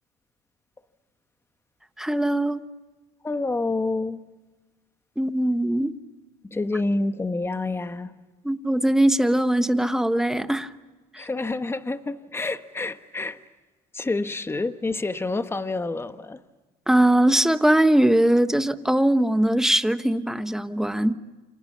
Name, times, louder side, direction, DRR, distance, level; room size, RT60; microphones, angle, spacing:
voice 1, 2.0-2.6 5.2-5.9 8.4-10.7 11.1-11.2 16.9-21.2, right 1 dB, 5° right, 1.2 m, -21 dB
voice 2, 3.2-4.2 6.5-8.1 11.2-13.4 13.9-16.4, left 2 dB, 15° left, 1.2 m, -28 dB
29.0 x 26.0 x 7.4 m
cardioid pair, 110°, 17 cm